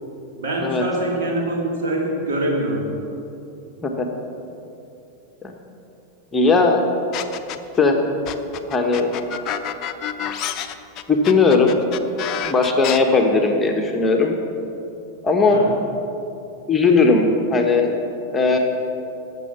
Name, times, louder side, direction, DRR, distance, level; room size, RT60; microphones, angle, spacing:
voice 1, 0.3-2.8 15.4-15.7, right 1 dB, 55° right, -1 dB, 3.0 m, -24 dB
voice 2, 6.3-6.8 7.8-8.0 8.7-9.1 11.1-11.8 12.4-14.3 15.2-15.6 16.7-18.0 18.3-18.6, left 3 dB, 15° left, 2 dB, 1.3 m, -17 dB
sound 1, 7.1-7.8 8.3-13.0, left 10 dB, 35° left, 0.7 m, -28 dB
19.5 x 6.9 x 5.9 m, 2.7 s
figure-of-eight pair, 90°, 0 cm